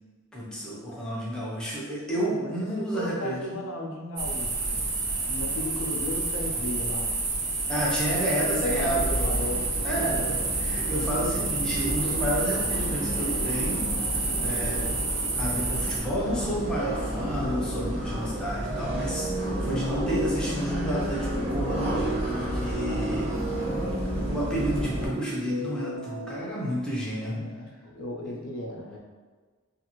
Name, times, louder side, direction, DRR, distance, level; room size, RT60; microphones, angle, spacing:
voice 1, 0.3-3.4 7.7-9.3 9.8-14.8 15.4-23.3 24.3-27.4 28.2-28.3, equal, 5° left, -6 dB, 0.5 m, -31 dB
voice 2, 2.2-4.9 5.3-7.2 8.3-10.3 11.2-11.6 27.3-29.0, left 1 dB, 70° left, 1 dB, 0.4 m, -36 dB
sound 1, 4.2-16.0, right 3 dB, 80° right, 0.6 m, -29 dB
sound 2, 8.6-25.1, equal, 30° right, 1.0 m, -32 dB
sound 3, 18.6-26.5, right 2 dB, 50° right, 1.1 m, -34 dB
2.4 x 2.4 x 3.0 m, 1.4 s
head